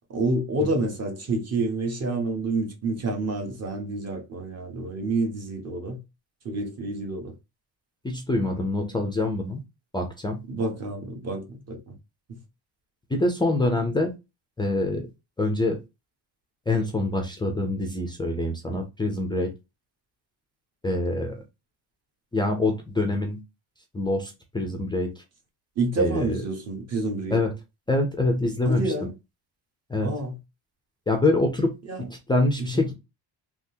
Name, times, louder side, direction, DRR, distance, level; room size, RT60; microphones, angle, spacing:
voice 1, 0.1-6.0 6.4-7.3 10.5-12.0 12.3-12.4 25.8-27.4 28.6-29.1 30.0-30.4 31.9-32.0 32.6-32.9, right 2 dB, 35° right, 0.8 m, -28 dB
voice 2, 8.0-9.6 9.9-10.4 13.1-14.1 14.6-15.1 15.4-15.8 16.7-19.5 20.8-21.4 22.3-23.4 23.9-25.1 26.0-26.4 27.3-27.5 27.9-28.9 29.9-30.1 31.1-31.7 32.0-32.9, left 2 dB, 10° left, 0.3 m, -25 dB
3.5 x 2.4 x 2.6 m
cardioid pair, 160°, 44 cm